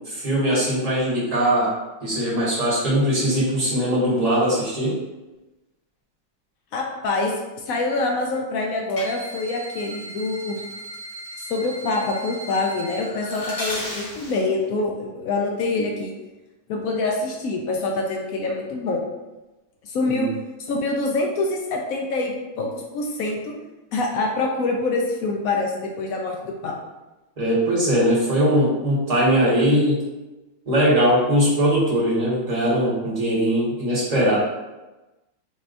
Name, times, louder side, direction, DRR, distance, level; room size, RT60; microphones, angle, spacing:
voice 1, 0.1-1.7 2.0-5.0 20.1-20.3 27.4-30.0 30.7-34.4, equal, 25° right, -8 dB, 1.3 m, -20 dB
voice 2, 6.7-7.3 7.6-10.6 11.4-16.1 16.7-19.0 19.8-20.3 20.6-23.5 23.9-26.7, left 3 dB, 75° left, 1 dB, 0.8 m, -25 dB
sound 1, 8.9-14.5, equal, 50° left, 0.4 m, -35 dB
4.2 x 3.3 x 2.5 m, 1.1 s
omnidirectional pair, 2.0 m